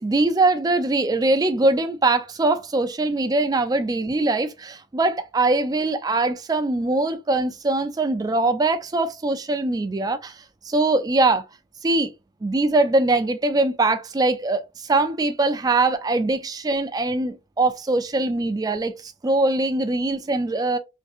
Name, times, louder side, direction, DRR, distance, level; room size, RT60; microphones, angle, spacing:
voice 1, 0.0-10.4 10.7-11.4 11.8-12.1 12.4-20.8, right 2 dB, 20° right, 0.3 m, -22 dB
3.6 x 2.6 x 2.4 m
head